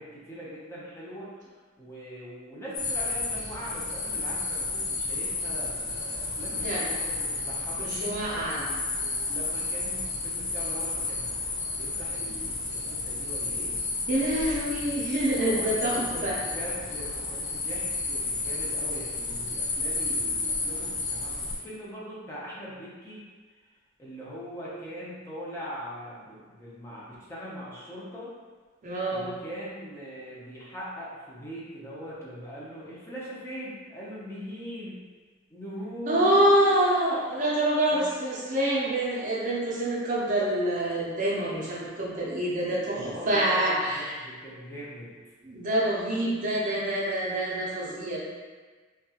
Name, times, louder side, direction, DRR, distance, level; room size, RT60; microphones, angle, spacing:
voice 1, 0.0-8.1 8.6-13.8 15.4-23.2 24.0-28.3 29.1-35.0 35.5-36.5 37.9-38.0 43.0-45.1, equal, 15° left, -8 dB, 0.5 m, -41 dB
sound 1, 2.7-21.6, left 3 dB, 85° left, 0.5 m, -32 dB
voice 2, 7.8-8.7 14.1-16.4 28.8-29.3 36.1-44.1 45.4-48.2, right 1 dB, 40° right, -5 dB, 0.5 m, -26 dB
2.7 x 2.3 x 2.7 m, 1.4 s
head